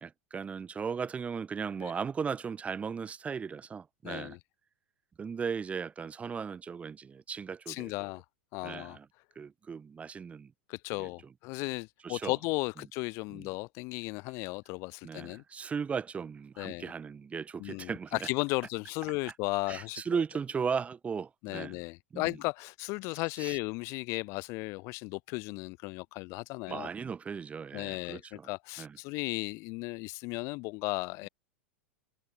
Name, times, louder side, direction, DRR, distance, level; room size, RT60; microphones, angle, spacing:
voice 1, 0.0-4.4 5.2-7.9 8.6-9.1 9.4-10.5 11.0-11.1 12.0-12.4 13.3-13.5 15.0-18.3 19.3-19.4 19.7-21.8 22.1-22.4 23.4-23.6 26.7-28.5 28.8-29.0, right 6 dB, 20° right, 0.9 m, -37 dB
voice 2, 4.0-4.4 7.7-8.2 8.5-9.0 10.7-15.4 16.6-16.9 17.6-20.0 21.4-26.9 27.7-31.3, left 26 dB, 45° left, 0.4 m, -35 dB
figure-of-eight pair, 90°, 7 cm